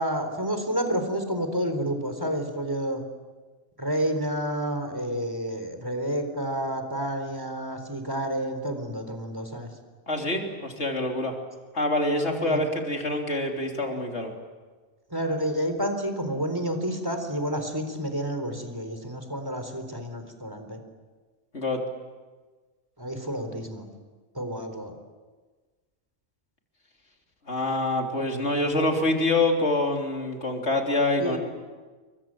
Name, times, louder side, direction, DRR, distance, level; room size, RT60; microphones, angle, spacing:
voice 1, 0.0-3.0 3.8-9.7 12.4-12.6 15.1-20.8 23.0-23.8 24.3-24.9 31.2-31.4, right 1 dB, 15° right, 6 dB, 4.1 m, -29 dB
voice 2, 10.1-11.4 11.7-14.3 21.5-21.8 27.5-31.4, left 2 dB, 60° left, 2 dB, 3.8 m, -26 dB
29.5 x 23.5 x 7.8 m, 1.4 s
omnidirectional pair, 1.3 m